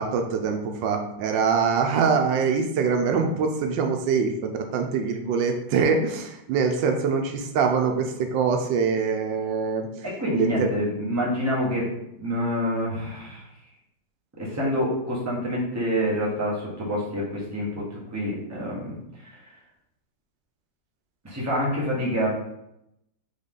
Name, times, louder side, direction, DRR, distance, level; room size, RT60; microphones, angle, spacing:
voice 1, 0.0-9.9 10.3-10.7, right 5 dB, 85° right, 4 dB, 1.3 m, -24 dB
voice 2, 10.0-11.9 12.2-13.5 14.4-19.4 21.2-22.3, equal, 10° right, -5 dB, 1.0 m, -27 dB
4.0 x 3.5 x 3.7 m, 0.82 s
omnidirectional pair, 1.9 m